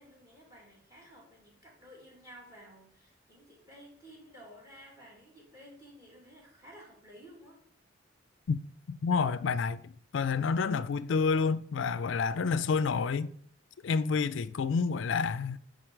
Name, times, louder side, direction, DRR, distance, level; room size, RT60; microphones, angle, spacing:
voice 1, 0.0-7.6, equal, 15° right, 2.5 m, -53 dB
voice 2, 8.9-13.3 13.8-15.6, left 5 dB, 75° left, 0.4 m, -29 dB
10.0 x 3.9 x 4.6 m
head